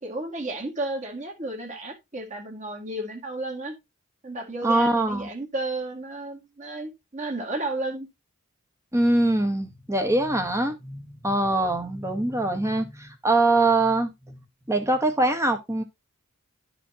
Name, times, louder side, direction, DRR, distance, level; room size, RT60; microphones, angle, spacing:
voice 1, 0.0-3.8 4.2-8.1, right 2 dB, 35° right, 2.0 m, -33 dB
voice 2, 4.6-5.3 8.9-14.4 14.7-15.8, right 2 dB, 15° right, 1.2 m, -23 dB
11.5 x 5.1 x 2.8 m
head